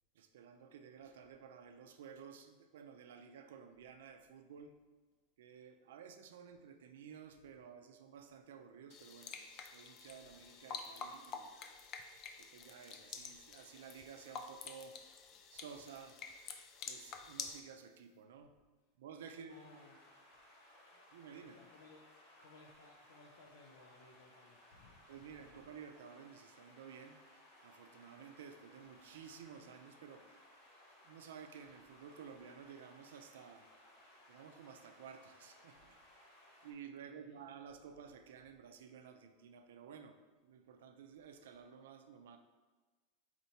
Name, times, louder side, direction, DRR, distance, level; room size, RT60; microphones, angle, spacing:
voice 1, 0.1-4.7 5.4-11.5 12.4-15.0 15.5-16.2 16.9-18.5 19.0-19.6 21.1-21.6 25.1-27.2 27.6-30.3 31.0-33.7 34.3-36.2 36.6-42.4, right 7 dB, 90° right, 6 dB, 0.4 m, -54 dB
sound 1, 8.9-17.6, left 5 dB, 30° left, 0.3 m, -49 dB
voice 2, 19.3-20.6 20.9-21.0 21.5-25.7 36.3-36.4 37.0-37.5, left 3 dB, 80° left, -1 dB, 0.5 m, -63 dB
sound 2, 19.5-36.7, left 1 dB, 50° left, 1.3 m, -63 dB
4.3 x 2.8 x 4.4 m, 1.3 s
supercardioid pair, 170°, 0 cm